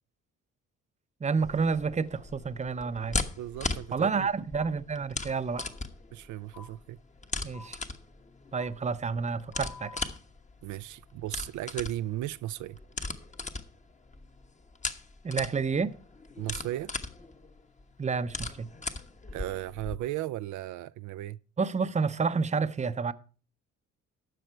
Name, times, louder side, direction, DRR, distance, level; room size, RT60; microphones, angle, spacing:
voice 1, 1.2-3.2 3.9-5.6 7.4-7.8 8.5-10.0 15.2-15.9 18.0-18.7 21.6-23.1, right 5 dB, 25° right, 0.7 m, -29 dB
sound 1, 1.4-20.0, left 3 dB, 25° left, 1.1 m, -39 dB
voice 2, 3.3-4.3 6.1-7.0 10.6-12.8 16.4-16.9 19.3-21.4, right 14 dB, 75° right, 0.4 m, -36 dB
sound 2, 4.5-4.7 5.5-5.7 6.5-6.7 7.5-7.7 8.5-8.7 9.5-10.1, left 4 dB, 90° left, 4.9 m, -47 dB
12.5 x 7.7 x 4.6 m
cardioid pair, 90°, 30 cm